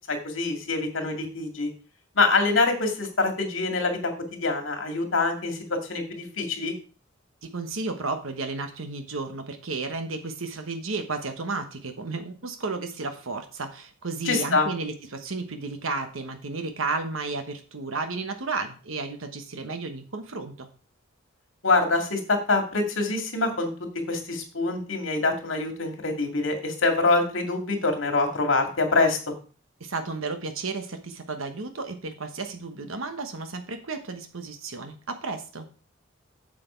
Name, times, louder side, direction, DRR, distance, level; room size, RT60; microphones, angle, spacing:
voice 1, 0.1-1.7 2.2-6.7 14.2-14.7 21.6-23.7 24.1-29.2, left 3 dB, 70° left, 4 dB, 2.2 m, -25 dB
voice 2, 7.4-20.7 29.8-35.7, right 3 dB, 80° right, 7 dB, 1.1 m, -33 dB
7.8 x 7.7 x 4.4 m, 0.37 s
head